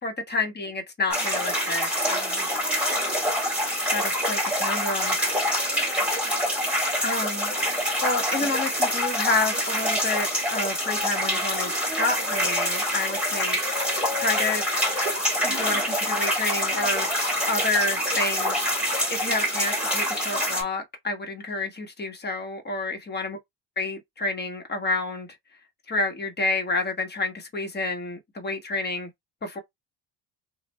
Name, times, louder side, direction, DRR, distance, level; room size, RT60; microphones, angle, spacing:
voice 1, 0.0-2.5 3.9-5.2 5.6-6.0 7.0-7.6 8.0-13.6 14.2-14.6 15.4-17.1 17.5-18.7 19.1-23.4 23.8-25.3 25.9-29.1 29.4-29.6, left 3 dB, 20° left, 1.2 m, -29 dB
sound 1, 1.1-20.6, equal, 5° right, 2.1 m, -26 dB
3.3 x 2.3 x 4.1 m
cardioid pair, 120°, 44 cm